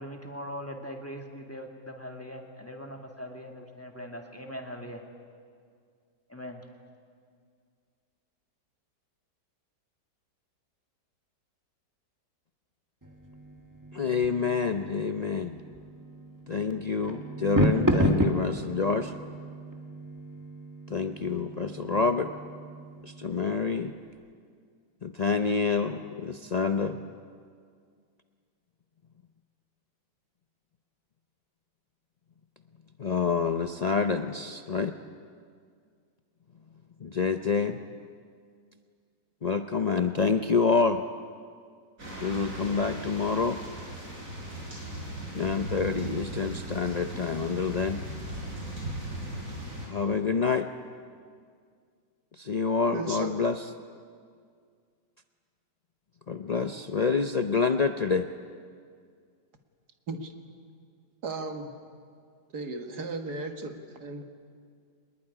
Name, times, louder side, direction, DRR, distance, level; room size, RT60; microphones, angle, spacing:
voice 1, 0.0-5.0 6.3-6.7, equal, 10° left, 2 dB, 2.1 m, -41 dB
sound 1, 13.0-23.8, right 1 dB, 10° right, 1.4 m, -32 dB
voice 2, 13.9-15.6 16.5-19.1 20.9-22.3 23.0-23.9 25.0-27.0 33.0-34.9 37.0-37.8 39.4-41.0 42.2-43.6 45.3-48.0 49.9-50.7 52.4-53.5 56.3-58.3, left 5 dB, 75° left, 7 dB, 0.3 m, -27 dB
sound 2, 42.0-49.9, right 1 dB, 50° right, 6.8 m, -38 dB
voice 3, 52.9-53.5 60.1-60.3 61.2-61.7 62.5-64.2, right 3 dB, 65° right, 6 dB, 2.2 m, -35 dB
23.5 x 20.5 x 9.9 m, 2.1 s
omnidirectional pair, 1.9 m